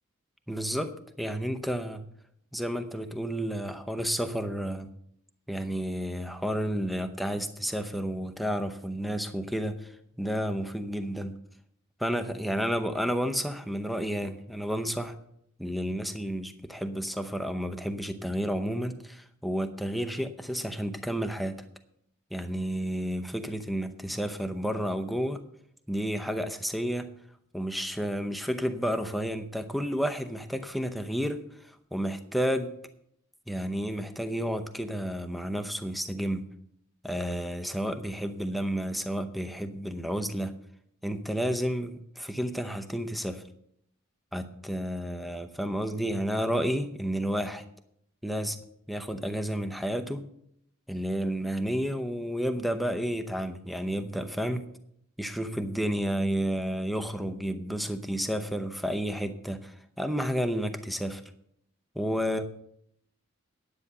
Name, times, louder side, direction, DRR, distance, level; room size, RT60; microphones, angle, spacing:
voice 1, 0.5-2.0 2.5-4.9 5.5-9.9 10.2-11.3 12.0-15.1 15.6-21.6 22.3-25.4 25.9-27.1 27.5-32.7 33.5-36.4 37.0-40.5 41.0-43.4 44.3-47.6 48.2-48.6 48.9-50.2 50.9-54.7 55.2-61.2 62.0-62.5, equal, ahead, 6 dB, 0.7 m, -31 dB
10.0 x 8.8 x 5.5 m, 0.72 s
head